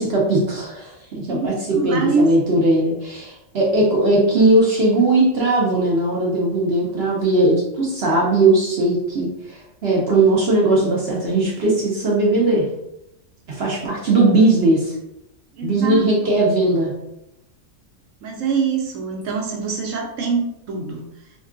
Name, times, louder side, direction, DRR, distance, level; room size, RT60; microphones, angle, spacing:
voice 1, 0.0-12.6 13.5-14.9 15.6-16.9, right 2 dB, 60° right, -3 dB, 0.8 m, -18 dB
voice 2, 1.3-2.3 15.6-16.1 18.2-21.0, right 4 dB, 75° right, 1 dB, 1.0 m, -24 dB
3.5 x 2.3 x 2.4 m, 0.83 s
omnidirectional pair, 1.4 m